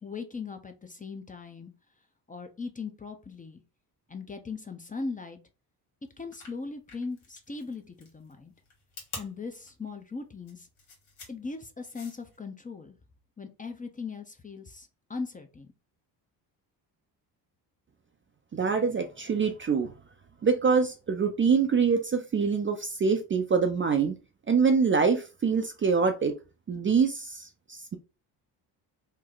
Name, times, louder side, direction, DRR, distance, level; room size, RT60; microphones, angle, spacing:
voice 1, 0.0-1.7 2.3-3.6 4.1-5.4 6.2-8.5 9.2-10.7 11.3-12.9 13.4-15.7, left 4 dB, 15° left, 0.6 m, -39 dB
sound 1, 6.2-12.4, left 3 dB, 85° left, 1.5 m, -47 dB
voice 2, 18.5-19.9 20.4-24.2 24.5-26.3 26.7-28.0, right 5 dB, 25° right, 0.5 m, -25 dB
3.2 x 2.1 x 3.8 m
hypercardioid pair, 55°, 47 cm